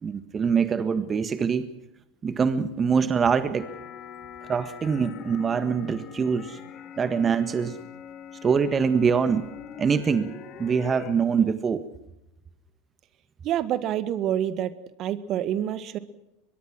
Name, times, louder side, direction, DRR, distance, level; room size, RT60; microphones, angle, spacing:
voice 1, 0.0-1.7 2.2-3.7 4.5-6.6 7.0-7.8 8.4-9.5 9.8-10.3 10.6-11.9, right 6 dB, 30° right, 11 dB, 1.6 m, -24 dB
sound 1, 3.6-11.1, left 8 dB, 45° left, 4.1 m, -43 dB
voice 2, 13.4-14.7 15.0-16.0, right 11 dB, 50° right, 13 dB, 1.9 m, -27 dB
23.5 x 22.0 x 6.2 m, 0.90 s
hypercardioid pair, 90°, 0 cm